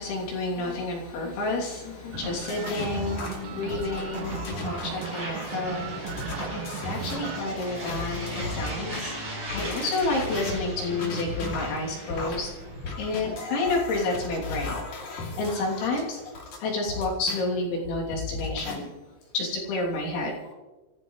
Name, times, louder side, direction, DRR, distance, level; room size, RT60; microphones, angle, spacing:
voice 1, 0.0-12.5 13.0-16.2 16.6-18.9 19.3-20.5, left 2 dB, 85° left, -2 dB, 5.4 m, -30 dB
sound 1, 1.5-16.3, right 1 dB, 25° right, 6.7 m, -40 dB
sound 2, 2.1-9.0 9.5-17.4 17.8-18.7, left 3 dB, 45° left, 3.8 m, -36 dB
sound 3, 2.1-7.4, right 15 dB, 85° right, 2.3 m, -38 dB
26.5 x 15.5 x 3.2 m, 1.2 s
omnidirectional pair, 5.2 m